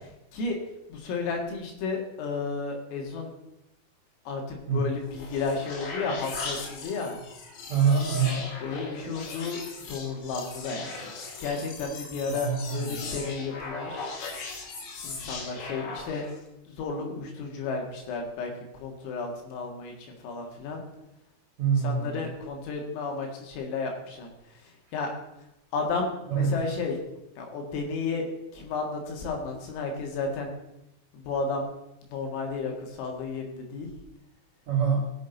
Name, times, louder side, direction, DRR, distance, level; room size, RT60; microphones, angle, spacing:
voice 1, 0.9-3.3 4.3-7.2 8.6-9.6 9.9-11.1 11.4-14.2 15.0-16.2 16.7-20.8 21.8-24.3 24.9-25.1 25.7-27.0 27.4-30.5 31.1-31.7 32.1-33.9, left 4 dB, 85° left, 1 dB, 4.6 m, -32 dB
sound 1, 5.0-16.4, left 4 dB, 60° left, 3.1 m, -39 dB
voice 2, 7.7-8.5 12.3-13.1 21.6-22.2 26.3-26.6 34.7-35.1, right 6 dB, 85° right, -2 dB, 1.5 m, -25 dB
17.0 x 7.5 x 4.1 m, 0.87 s
omnidirectional pair, 5.9 m